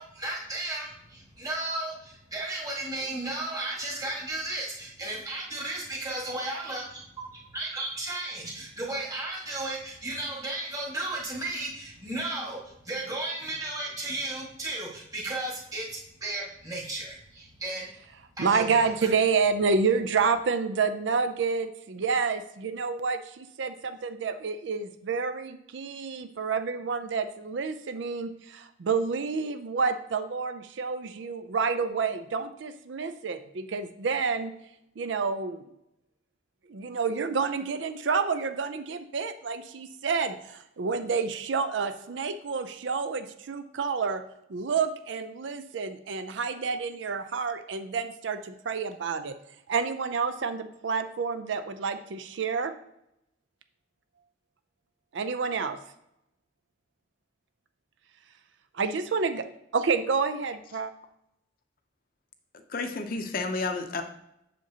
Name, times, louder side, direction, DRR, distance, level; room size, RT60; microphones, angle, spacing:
voice 1, 0.0-6.8 7.5-12.6 12.8-17.9 18.4-19.1, right 2 dB, 20° right, -2 dB, 1.7 m, -34 dB
voice 2, 18.4-34.5 35.0-35.6 36.7-44.2 44.5-49.3 49.7-52.7 55.1-55.8 58.8-59.4 59.7-60.9, right 5 dB, 70° right, 9 dB, 0.5 m, -29 dB
voice 3, 62.7-64.0, left 3 dB, 50° left, 7 dB, 0.6 m, -31 dB
7.6 x 6.6 x 2.8 m, 0.80 s
head